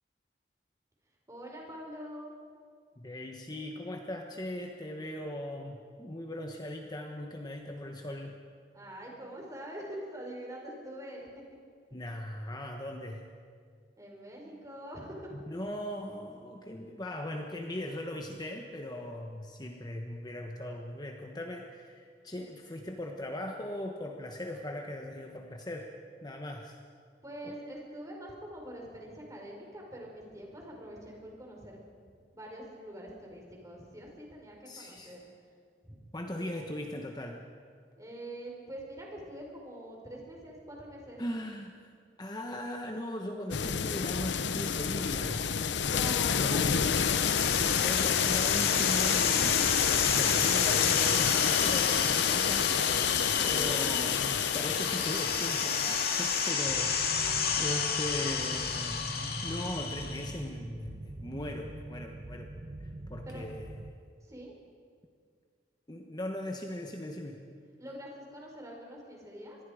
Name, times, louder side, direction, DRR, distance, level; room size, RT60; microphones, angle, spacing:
voice 1, 1.3-2.3 8.7-11.3 14.0-15.3 27.2-31.8 32.3-35.2 35.8-36.0 38.0-41.2 45.8-47.0 53.4-54.0 63.2-63.4 64.2-64.5 67.8-69.6, right 1 dB, 20° right, -1 dB, 4.7 m, -44 dB
voice 2, 3.0-8.4 11.9-13.2 15.3-25.9 26.2-26.8 27.4-27.6 34.7-35.2 36.1-37.4 41.2-41.9 42.2-45.6 46.3-52.8 53.5-62.5 62.8-63.7 65.9-67.4, left 1 dB, 25° left, 3 dB, 1.2 m, -39 dB
sound 1, 43.5-56.5, left 7 dB, 80° left, 0.7 m, -28 dB
sound 2, 46.6-60.4, left 6 dB, 55° left, 2.4 m, -31 dB
sound 3, 56.7-63.9, right 1 dB, 40° right, 0.9 m, -43 dB
26.0 x 21.0 x 5.0 m, 2.1 s
head